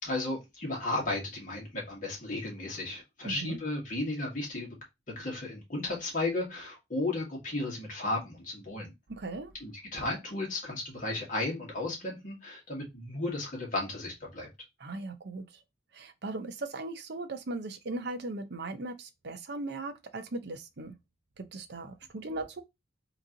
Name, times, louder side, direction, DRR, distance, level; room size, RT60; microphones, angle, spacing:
voice 1, 0.0-4.8 5.2-8.9 9.6-14.5, left 2 dB, 40° left, 2.0 m, -34 dB
voice 2, 3.2-3.6 9.1-9.5 14.8-15.6 15.9-20.9 21.4-22.6, right 2 dB, 55° right, 0.6 m, -38 dB
3.6 x 2.9 x 3.8 m
head